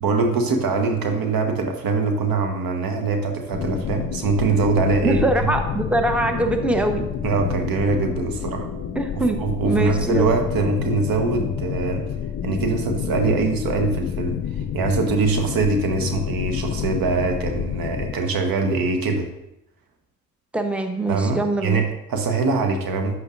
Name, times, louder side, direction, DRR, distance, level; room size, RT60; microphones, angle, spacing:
voice 1, 0.0-5.5 7.2-8.7 9.4-12.1 12.4-19.3 21.1-23.2, right 4 dB, 60° right, 5 dB, 1.3 m, -23 dB
sound 1, 3.0-16.0, right 1 dB, 80° right, 2.0 m, -43 dB
sound 2, 3.5-18.1, left 9 dB, 45° left, 0.5 m, -29 dB
voice 2, 5.0-7.1 8.9-10.3 20.5-21.8, right 2 dB, 5° right, 5 dB, 1.0 m, -23 dB
10.0 x 8.1 x 2.6 m, 0.88 s
hypercardioid pair, 45°, 40 cm